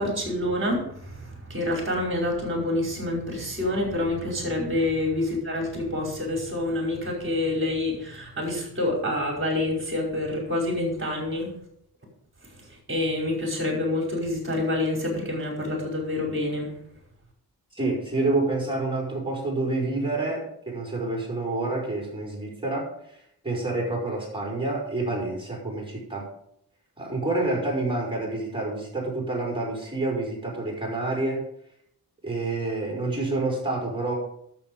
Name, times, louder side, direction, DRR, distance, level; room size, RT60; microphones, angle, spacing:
voice 1, 0.0-11.5 12.9-16.7, left 1 dB, 30° right, -1 dB, 4.9 m, -27 dB
voice 2, 17.7-23.2 23.4-26.3 27.0-31.4 32.2-34.1, right 2 dB, 15° right, -2 dB, 5.0 m, -28 dB
12.0 x 7.2 x 5.4 m, 0.71 s
wide cardioid pair, 115°, 38 cm